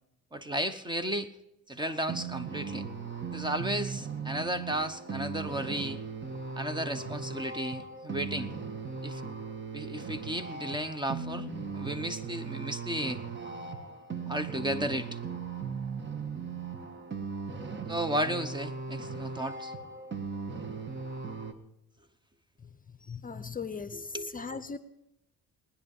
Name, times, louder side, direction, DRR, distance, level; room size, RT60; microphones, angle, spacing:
voice 1, 0.3-1.3 1.7-2.8 3.3-6.0 6.6-8.5 9.0-9.2 9.7-11.5 11.7-13.2 14.3-15.2 17.9-19.7 23.9-24.4, right 1 dB, 15° right, 10 dB, 0.9 m, -34 dB
sound 1, 1.8-21.5, right 5 dB, 40° right, 1.5 m, -38 dB
voice 2, 23.0-24.8, left 5 dB, 30° left, 12 dB, 0.7 m, -38 dB
19.5 x 10.0 x 5.4 m, 0.83 s
cardioid pair, 90°, 30 cm